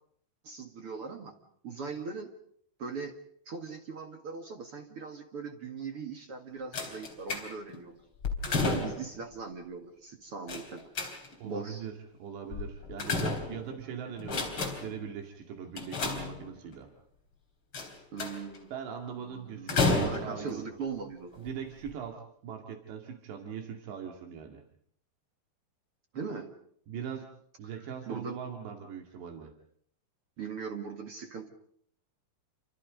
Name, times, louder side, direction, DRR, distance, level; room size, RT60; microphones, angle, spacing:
voice 1, 0.4-1.3 1.6-2.3 2.8-3.2 3.5-8.0 8.5-10.9 11.4-11.9 18.1-18.7 19.2-21.5 26.1-26.6 28.1-28.4 30.4-31.5, right 5 dB, 45° right, 4 dB, 2.2 m, -39 dB
sound 1, 6.7-7.8 8.2-9.2 10.5-11.5 12.5-13.8 14.2-15.0 15.8-16.7 17.7-18.6 19.7-20.5 21.3-21.5 21.8-21.9, left 3 dB, 30° left, 4.2 m, -32 dB
voice 2, 11.4-11.9 12.2-16.9 18.2-18.4 18.7-20.7 21.4-22.2 22.4-24.6 26.9-27.3 27.6-29.5, right 7 dB, 85° right, 3 dB, 4.5 m, -40 dB
29.0 x 25.5 x 5.3 m, 0.65 s
omnidirectional pair, 4.9 m